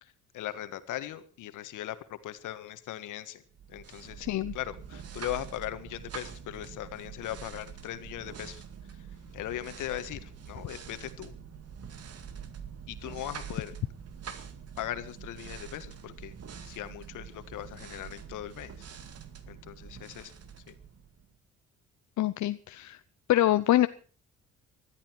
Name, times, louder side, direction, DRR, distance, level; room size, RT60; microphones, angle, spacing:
voice 1, 0.0-3.4 3.7-8.6 8.9-9.1 9.3-11.3 12.9-13.7 14.8-16.3 16.6-18.8 19.5-20.3 20.7-20.8, left 13 dB, 85° left, 11 dB, 1.7 m, -39 dB
sound 1, 3.5-21.4, right 7 dB, 55° right, 2.2 m, -45 dB
voice 2, 4.2-4.5 22.2-23.0 23.3-23.9, left 14 dB, 70° left, 12 dB, 0.7 m, -25 dB
19.5 x 13.0 x 4.6 m, 0.39 s
cardioid pair, 90°, 30 cm